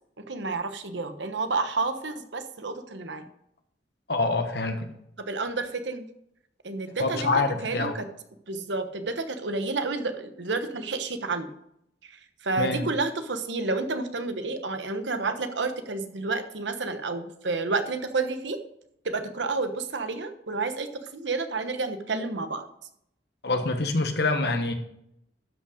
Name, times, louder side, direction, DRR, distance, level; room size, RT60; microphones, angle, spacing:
voice 1, 0.2-3.2 5.2-6.1 6.6-8.1 8.5-11.5 12.0-12.2 12.4-18.6 19.0-20.9 21.1-22.7, right 3 dB, 85° right, 8 dB, 1.1 m, -30 dB
voice 2, 4.1-4.9 7.0-7.9 12.6-12.9 23.4-24.7, left 3 dB, 65° left, 6 dB, 1.3 m, -26 dB
12.5 x 5.6 x 5.1 m, 0.75 s
head